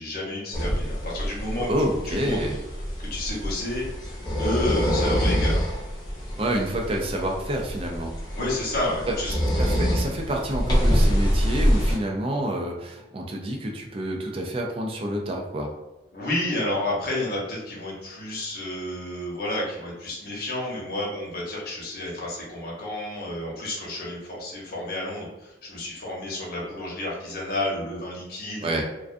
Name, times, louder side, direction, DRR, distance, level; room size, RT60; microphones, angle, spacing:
voice 1, 0.0-1.7 2.0-2.4 3.0-3.8 4.4-5.6 8.3-9.4 16.1-28.8, left 1 dB, 60° left, -5 dB, 0.9 m, -30 dB
sound 1, 0.5-12.0, equal, 25° left, 0.7 m, -25 dB
voice 2, 1.7-2.6 6.4-8.1 9.1-15.7 28.6-28.8, right 1 dB, 30° right, 1 dB, 0.4 m, -28 dB
2.3 x 2.2 x 2.5 m, 0.99 s
head